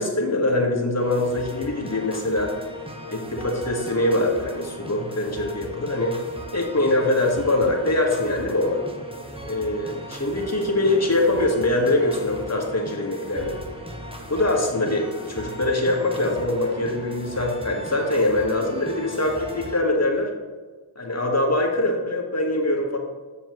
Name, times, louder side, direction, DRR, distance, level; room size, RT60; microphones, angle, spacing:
voice 1, 0.0-2.5 3.1-6.2 6.5-8.8 9.4-13.6 14.3-20.3 20.9-23.0, left 2 dB, 30° left, 0 dB, 1.7 m, -23 dB
sound 1, 1.0-19.8, equal, 10° right, 1.1 m, -38 dB
7.0 x 7.0 x 3.1 m, 1.4 s
cardioid pair, 45°, 48 cm